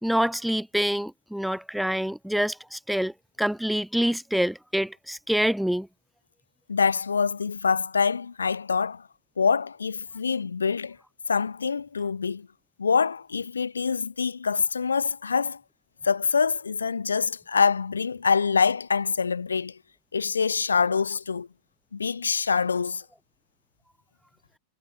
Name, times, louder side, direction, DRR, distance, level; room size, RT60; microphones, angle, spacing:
voice 1, 0.0-3.1 3.4-5.9, equal, ahead, 2.9 m, -26 dB
voice 2, 6.7-9.0 9.4-11.0 11.3-12.5 12.8-15.6 16.0-19.7 20.1-21.5 21.9-23.0, left 5 dB, 75° left, 1.6 m, -25 dB
figure-of-eight pair, 90°, 0 cm